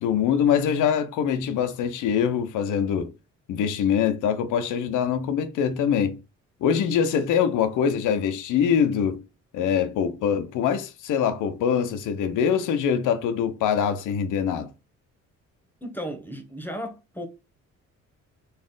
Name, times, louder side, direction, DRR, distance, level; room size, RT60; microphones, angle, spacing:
voice 1, 0.0-3.1 3.5-6.2 6.6-9.2 9.5-14.7, left 8 dB, 85° left, 0.7 m, -23 dB
voice 2, 15.8-17.3, equal, 5° left, 1.0 m, -35 dB
4.2 x 2.4 x 3.7 m
cardioid pair, 90°, 30 cm